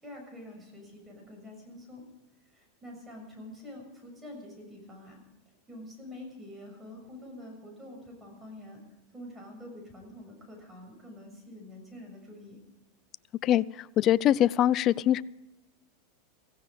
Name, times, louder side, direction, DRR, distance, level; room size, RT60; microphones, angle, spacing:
voice 1, 0.0-2.0 2.5-5.2 5.7-8.8 9.1-12.6, left 1 dB, 15° right, 2 dB, 6.9 m, -46 dB
voice 2, 14.0-15.2, left 12 dB, 40° left, 19 dB, 0.5 m, -23 dB
16.5 x 16.5 x 5.0 m, 1.0 s
supercardioid pair, 125°, 0 cm